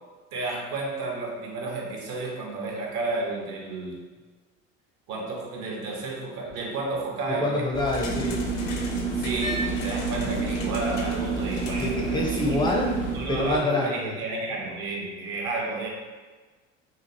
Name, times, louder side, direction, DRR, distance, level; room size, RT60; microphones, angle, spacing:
voice 1, 0.3-4.0 5.1-7.7 9.2-12.4 12.7-15.9, right 3 dB, 50° right, -2 dB, 0.9 m, -32 dB
voice 2, 7.4-8.4 11.8-13.0 13.3-14.1, left 2 dB, 10° left, 0 dB, 0.5 m, -26 dB
sound 1, 7.7-13.6, left 1 dB, 65° left, 0.6 m, -36 dB
sound 2, 8.0-13.1, right 4 dB, 85° right, 1.2 m, -29 dB
3.0 x 2.3 x 2.8 m, 1.4 s
figure-of-eight pair, 65°, 39 cm